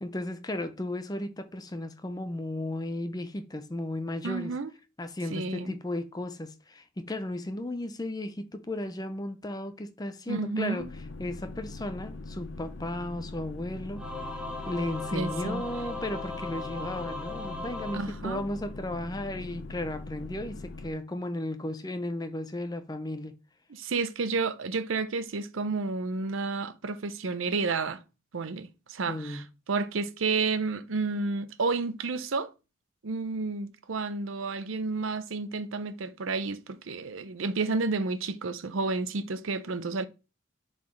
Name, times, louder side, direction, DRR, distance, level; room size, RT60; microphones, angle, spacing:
voice 1, 0.0-4.5 5.0-10.9 11.2-14.0 14.7-23.3 29.1-29.4, left 1 dB, 20° left, 0.5 m, -35 dB
voice 2, 4.2-4.7 5.3-5.8 10.3-10.9 15.1-15.6 17.9-18.4 23.7-28.0 28.3-32.5 33.0-40.1, right 4 dB, 80° right, 0.6 m, -31 dB
sound 1, 10.8-20.9, left 2 dB, 60° left, 0.7 m, -42 dB
Singing / Musical instrument, 14.0-18.8, left 2 dB, 5° right, 0.9 m, -38 dB
10.5 x 4.0 x 3.2 m
head